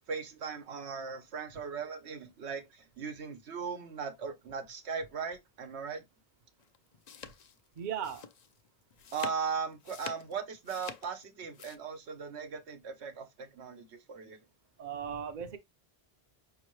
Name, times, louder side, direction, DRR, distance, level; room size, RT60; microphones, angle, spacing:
voice 1, 0.1-6.0 9.1-14.4, right 6 dB, 85° right, 1.2 m, -38 dB
sound 1, 6.6-11.8, left 7 dB, 55° left, 0.5 m, -47 dB
voice 2, 7.8-8.3 14.8-15.6, right 8 dB, 50° right, 0.7 m, -37 dB
5.3 x 2.8 x 3.0 m
omnidirectional pair, 1.1 m